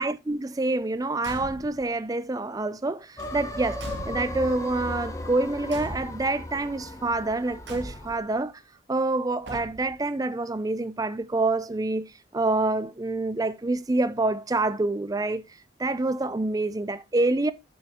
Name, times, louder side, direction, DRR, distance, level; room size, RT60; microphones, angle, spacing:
voice 1, 0.0-8.5 8.9-15.4 15.8-17.5, right 2 dB, 20° right, 0.4 m, -27 dB
Car / Truck / Slam, 1.2-1.9 3.2-4.6 5.7-6.5 7.6-8.3 9.4-10.1, right 1 dB, 70° right, 1.9 m, -41 dB
sound 1, 3.2-8.2, left 1 dB, 15° left, 0.8 m, -36 dB
7.4 x 5.5 x 3.5 m
head